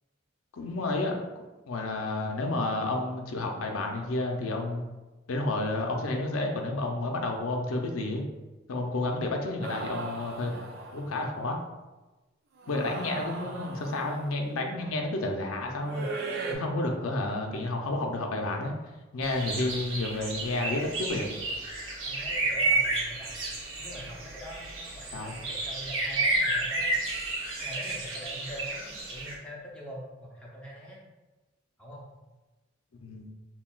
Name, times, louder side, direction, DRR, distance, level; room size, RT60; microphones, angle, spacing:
voice 1, 0.5-1.3 1.7-4.8 5.3-8.2 8.7-10.5 10.9-11.6 12.7-16.1 16.5-18.7 19.1-21.4 25.1-25.3 33.0-33.3, left 2 dB, 90° left, 2 dB, 0.5 m, -30 dB
sound 1, 9.6-11.2 12.6-14.3 15.8-16.5, right 3 dB, 50° right, 0.4 m, -37 dB
voice 2, 10.5-11.2 12.7-13.6 14.8-14.9 16.3-16.6 22.0-23.4 23.8-26.9 27.6-31.0 31.8-32.1, equal, 5° left, -5 dB, 0.6 m, -44 dB
sound 2, 19.2-29.3, right 2 dB, 75° right, 0.9 m, -31 dB
5.6 x 2.2 x 2.3 m, 1.1 s
head